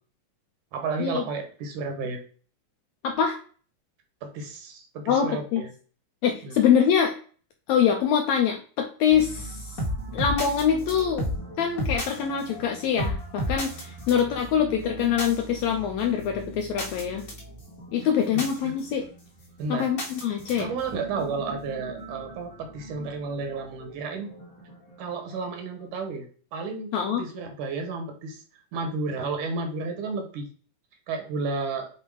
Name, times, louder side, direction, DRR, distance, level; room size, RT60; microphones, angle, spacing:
voice 1, 0.7-2.2 4.2-5.7 6.4-6.5 18.6-18.7 19.6-19.9 20.6-24.3 25.0-26.3 26.5-26.9 27.2-28.4 28.7-30.5 31.1-31.9, right 4 dB, 70° right, 5 dB, 2.4 m, -32 dB
voice 2, 3.0-3.4 5.1-5.6 6.2-7.1 7.7-9.8 10.1-11.3 11.6-17.2 17.9-19.1 19.7-20.7 26.9-27.2, left 8 dB, 80° left, 4 dB, 1.6 m, -24 dB
sound 1, 9.1-25.5, equal, 35° left, 1.6 m, -36 dB
7.5 x 2.7 x 4.7 m, 0.41 s
omnidirectional pair, 3.8 m